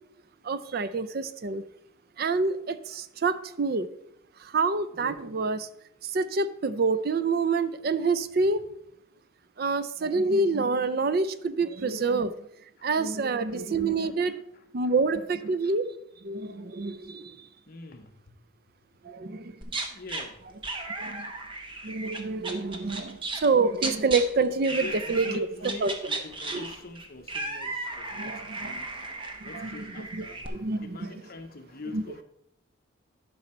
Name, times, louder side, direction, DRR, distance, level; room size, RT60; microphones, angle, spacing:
voice 1, 0.4-1.6 2.2-3.9 4.4-5.7 6.0-8.6 9.6-12.5 12.8-14.4 14.7-15.9 16.2-17.5 19.0-19.6 21.0-21.3 21.8-25.9 26.5-26.6 28.2-28.8 29.4-31.1 31.9-32.0, right 3 dB, 45° right, 0.4 m, -27 dB
voice 2, 13.2-14.9 15.6-15.7 17.7-18.4 19.9-20.4 24.7-32.2, left 3 dB, 45° left, 0.9 m, -45 dB
sound 1, 19.6-20.2 20.6-23.5 23.7-24.2 24.6-25.4 25.6-30.5, right 2 dB, 25° right, 0.9 m, -35 dB
11.0 x 5.5 x 4.3 m
head